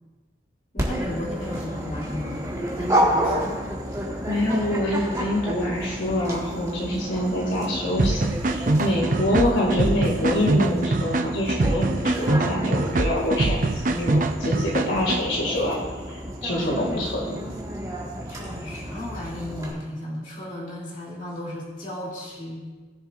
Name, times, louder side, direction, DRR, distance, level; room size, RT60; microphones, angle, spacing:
voice 1, 0.7-2.5 2.7-3.6 9.4-9.6 18.3-22.7, left 1 dB, 45° left, -5 dB, 2.8 m, -34 dB
Dog, 0.8-19.7, equal, 20° right, 1.7 m, -31 dB
voice 2, 4.3-8.2 8.5-15.8 16.4-17.4, left 1 dB, 85° left, -3 dB, 2.2 m, -25 dB
sound 1, 8.0-15.2, right 2 dB, 45° right, 0.5 m, -24 dB
19.5 x 7.0 x 2.5 m, 1.3 s
head